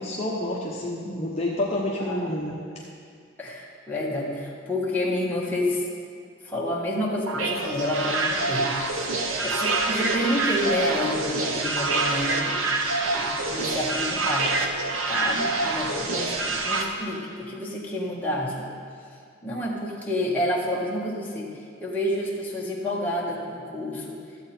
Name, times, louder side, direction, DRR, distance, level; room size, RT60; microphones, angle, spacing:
voice 1, 0.0-2.5, left 1 dB, 30° left, -5 dB, 0.9 m, -28 dB
voice 2, 2.0-2.4 3.4-5.9 6.4-9.1 9.4-12.6 13.1-14.7 15.1-18.7 19.4-21.5 21.8-24.2, left 1 dB, 10° left, -5 dB, 1.4 m, -29 dB
sound 1, 7.3-16.8, right 3 dB, 70° right, 1.0 m, -26 dB
13.5 x 8.0 x 4.4 m, 2.2 s
head